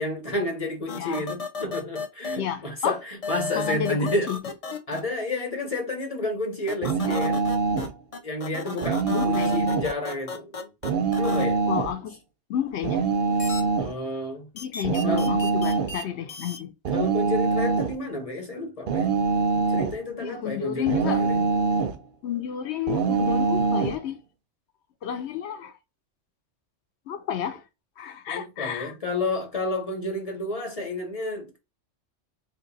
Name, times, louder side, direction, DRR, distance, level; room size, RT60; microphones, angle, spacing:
voice 1, 0.0-4.3 4.9-7.4 8.2-10.7 11.2-11.6 13.8-14.5 15.0-15.3 16.9-19.1 19.7-21.4 28.3-31.6, left 2 dB, 35° left, 0.9 m, -30 dB
sound 1, 0.9-2.4 3.2-5.0 6.7-7.9 8.1-11.4 13.4-13.6 14.6-16.0 16.3-16.6, left 4 dB, 50° left, 0.4 m, -34 dB
voice 2, 2.4-3.0 3.5-4.4 7.0-7.2 9.1-9.7 11.7-12.2 12.5-13.1 14.5-16.7 20.2-21.2 22.2-24.2 25.0-25.7 27.1-27.6 28.0-28.9, left 9 dB, 70° left, 0.9 m, -31 dB
sound 2, 6.8-7.9 8.8-10.0 10.8-12.0 12.8-13.9 14.8-16.0 16.9-18.0 18.9-20.0 20.9-22.0 22.9-24.0, right 4 dB, 60° right, 0.6 m, -24 dB
2.8 x 2.5 x 3.9 m
omnidirectional pair, 1.3 m